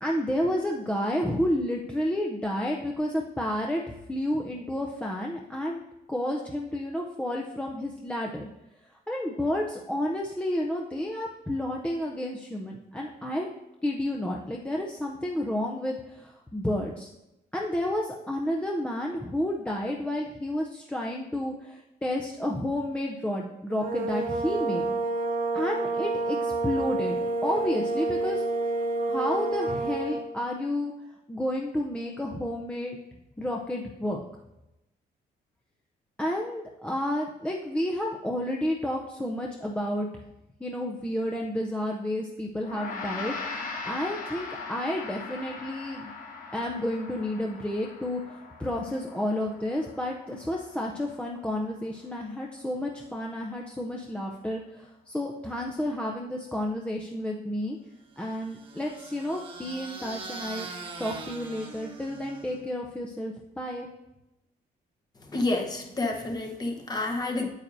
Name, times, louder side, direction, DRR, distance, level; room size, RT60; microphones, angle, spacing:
voice 1, 0.0-3.8 4.1-5.8 6.1-8.4 9.1-13.5 13.8-17.1 17.5-24.9 25.5-28.4 29.1-30.9 31.3-33.0 33.4-34.2 36.2-40.1 40.6-46.1 46.5-57.8 58.2-60.7 61.0-63.9, left 1 dB, 5° left, -1 dB, 0.5 m, -31 dB
sound 1, 23.7-30.3, right 3 dB, 60° right, 0.7 m, -29 dB
Gong, 42.6-52.2, left 4 dB, 55° left, 1.3 m, -40 dB
sound 2, 58.2-62.7, right 3 dB, 30° right, 1.0 m, -42 dB
voice 2, 65.3-67.5, left 2 dB, 25° left, 2 dB, 1.0 m, -29 dB
8.8 x 8.7 x 2.6 m, 0.91 s
wide cardioid pair, 170°, 17 cm